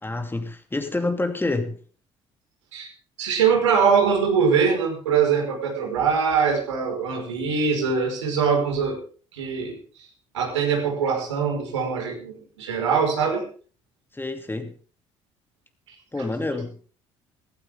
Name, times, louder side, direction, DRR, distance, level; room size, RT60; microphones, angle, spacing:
voice 1, 0.0-1.8 14.1-14.7 16.1-16.8, left 2 dB, 15° left, 2.7 m, -28 dB
voice 2, 3.2-9.0 9.3-9.8 10.3-13.5, right 6 dB, 80° right, 5.4 m, -22 dB
17.5 x 16.0 x 3.8 m
figure-of-eight pair, 55°, 15 cm